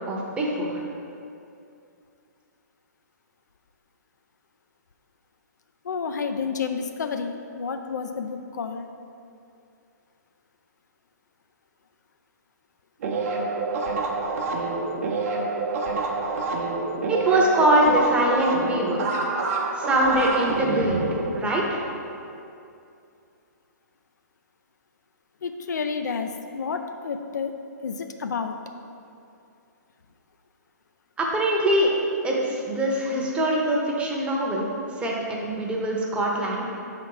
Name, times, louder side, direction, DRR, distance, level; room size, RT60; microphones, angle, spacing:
voice 1, 0.1-0.8 17.1-19.0 19.8-21.1 21.3-21.8 31.2-31.9 32.2-34.7 35.0-36.6, right 1 dB, 10° right, -2 dB, 0.8 m, -23 dB
voice 2, 5.9-8.9 25.4-27.5 27.8-27.9 28.2-28.6, left 5 dB, 75° left, 6 dB, 0.5 m, -30 dB
sound 1, 13.0-22.2, right 3 dB, 50° right, 0.8 m, -27 dB
5.8 x 4.1 x 4.7 m, 2.6 s
hypercardioid pair, 135°, 10 cm